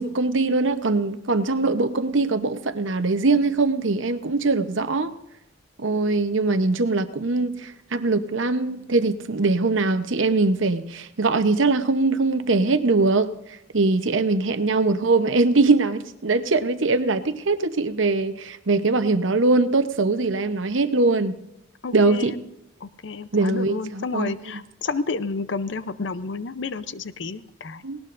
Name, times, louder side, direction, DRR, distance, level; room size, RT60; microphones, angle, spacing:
voice 1, 0.0-5.1 5.8-13.3 13.7-21.4 21.9-22.3 23.3-24.6 27.8-28.0, right 3 dB, 75° right, 10 dB, 0.9 m, -22 dB
voice 2, 21.8-22.5 22.8-27.8, left 4 dB, 65° left, 14 dB, 0.6 m, -31 dB
18.5 x 18.5 x 2.6 m, 0.86 s
head